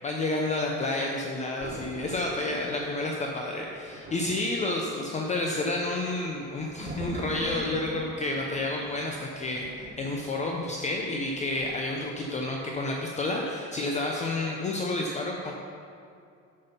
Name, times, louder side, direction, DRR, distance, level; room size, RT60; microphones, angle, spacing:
voice 1, 0.0-15.5, left 2 dB, 25° left, 0 dB, 0.5 m, -30 dB
Thunder, 1.6-12.2 12.5-12.8, right 2 dB, 35° right, 1.0 m, -45 dB
7.9 x 5.4 x 5.6 m, 2.4 s
cardioid pair, 160°, 31 cm